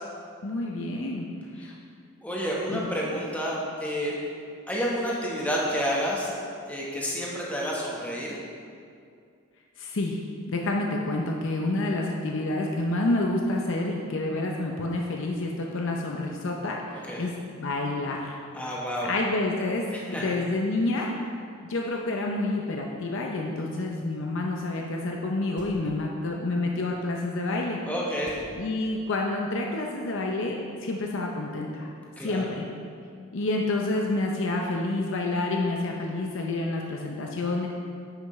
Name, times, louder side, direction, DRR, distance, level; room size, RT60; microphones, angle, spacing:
voice 1, 0.4-1.3 1.6-1.7 2.7-2.8 9.8-10.2 10.5-18.4 19.0-19.8 20.1-21.1 21.6-27.8 28.6-31.9 32.2-32.7 33.3-37.7, left 2 dB, 60° left, 0 dB, 0.6 m, -28 dB
voice 2, 2.2-4.2 4.7-6.3 6.7-8.4 17.0-17.3 18.5-19.1 19.9-20.3 27.8-28.4 32.2-32.5, equal, 5° left, -5 dB, 1.1 m, -30 dB
sound 1, 25.6-26.2 28.2-29.3, right 1 dB, 40° right, 0.9 m, -49 dB
9.9 x 5.9 x 3.2 m, 2.3 s
head